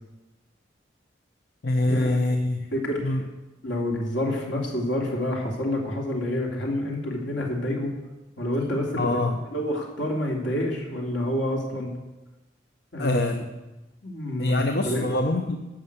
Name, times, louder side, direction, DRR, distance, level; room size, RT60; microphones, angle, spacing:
voice 1, 1.6-2.7 3.0-3.2 9.0-9.4 13.0-13.5 14.4-15.6, left 2 dB, 60° left, 5 dB, 0.8 m, -24 dB
voice 2, 2.7-3.1 3.6-7.9 8.4-9.2 9.5-11.9 12.9-13.2 14.0-15.2, left 1 dB, 75° left, -1 dB, 2.8 m, -28 dB
11.5 x 6.5 x 8.1 m, 1.1 s
head